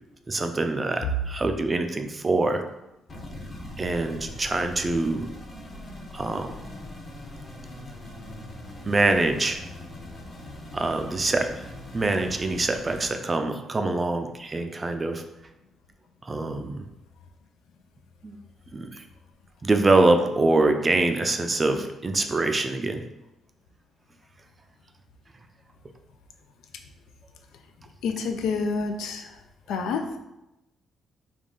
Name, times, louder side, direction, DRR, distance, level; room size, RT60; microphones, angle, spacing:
voice 1, 0.3-2.6 3.8-5.3 6.1-6.5 8.9-9.6 10.7-11.5 11.9-15.2 16.2-16.8 18.2-18.4 18.7-19.0 19.6-23.0, right 2 dB, 30° right, 6 dB, 0.4 m, -24 dB
sound 1, 3.1-13.1, left 1 dB, 40° left, 0.9 m, -41 dB
voice 2, 28.0-29.3 29.7-30.2, left 4 dB, 85° left, 5 dB, 0.4 m, -28 dB
3.6 x 2.4 x 3.8 m, 0.92 s
cardioid pair, 90°, 0 cm